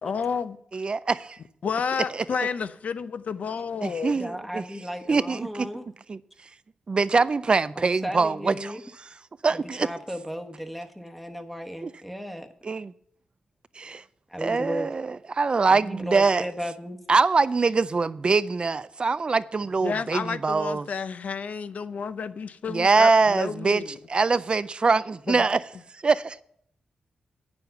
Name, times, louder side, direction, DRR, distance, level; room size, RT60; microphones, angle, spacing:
voice 1, 0.0-0.6 1.6-4.2 19.8-24.0 25.3-25.5, left 6 dB, 60° left, 0.6 m, -31 dB
voice 2, 0.7-1.4 3.8-4.6 5.1-5.7 6.1-6.2 6.9-8.7 9.4-9.9 12.7-12.9 13.8-14.0 14.4-15.0 15.4-16.4 17.1-20.8 22.7-23.8 24.1-25.6 26.0-26.4, right 4 dB, 35° right, 0.4 m, -23 dB
voice 3, 4.1-5.9 7.7-8.8 9.5-12.5 14.3-14.9 15.7-17.0, equal, ahead, 1.1 m, -35 dB
9.3 x 7.0 x 6.8 m
wide cardioid pair, 110°, 3 cm